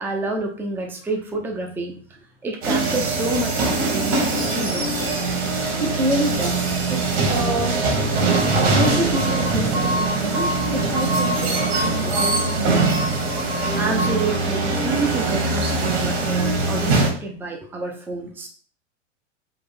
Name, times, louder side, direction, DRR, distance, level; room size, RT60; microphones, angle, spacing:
voice 1, 0.0-2.0 2.4-5.3 13.7-18.5, right 2 dB, 5° right, 1 dB, 0.6 m, -29 dB
sound 1, 2.6-17.1, right 3 dB, 55° right, 1.6 m, -22 dB
voice 2, 5.8-7.0 7.3-7.8 8.7-13.0, right 1 dB, 90° right, -4 dB, 1.7 m, -27 dB
3.9 x 2.5 x 4.3 m, 0.43 s
figure-of-eight pair, 90°, 37 cm